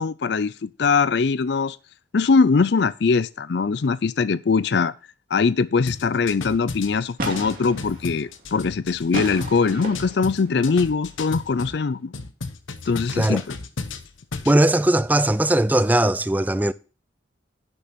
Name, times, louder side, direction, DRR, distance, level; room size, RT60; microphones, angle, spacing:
voice 1, 0.0-1.8 2.1-4.9 5.3-12.1 12.9-13.4, left 4 dB, 60° left, 0.4 m, -21 dB
sound 1, 5.9-11.8 12.1-14.6, left 3 dB, 90° left, 1.0 m, -34 dB
sound 2, 6.5-6.6 6.8-6.9 7.2-10.9 11.3-11.4, right 1 dB, 45° right, 2.6 m, -34 dB
voice 2, 14.5-16.7, right 1 dB, 10° right, 0.4 m, -19 dB
11.0 x 6.8 x 4.3 m
head